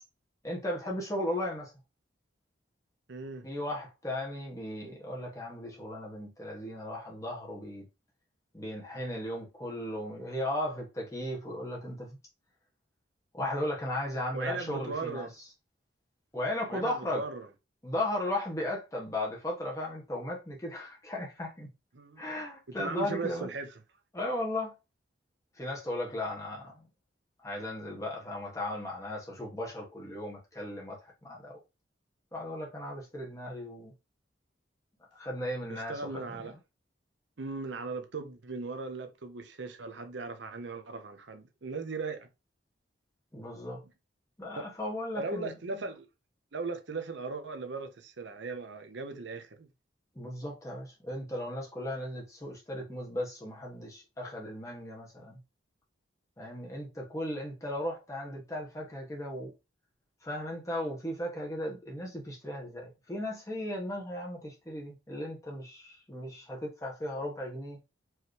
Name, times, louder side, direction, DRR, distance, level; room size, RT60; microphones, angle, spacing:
voice 1, 0.4-1.7 3.4-7.8 8.5-12.2 13.3-15.3 16.3-17.2 17.8-21.7 22.2-23.5 24.1-24.7 25.6-26.9 27.4-31.6 32.3-33.9 35.1-36.5 43.3-43.8 44.4-45.6 50.1-55.4 56.4-59.5 60.2-67.8, left 1 dB, 15° left, 1.4 m, -36 dB
voice 2, 3.1-3.5 14.3-15.3 16.7-17.5 21.9-22.3 22.7-23.7 35.7-36.5 37.4-42.3 44.6-44.7 45.2-46.1 46.5-49.7, right 3 dB, 70° right, 0.7 m, -38 dB
4.6 x 3.2 x 3.2 m
head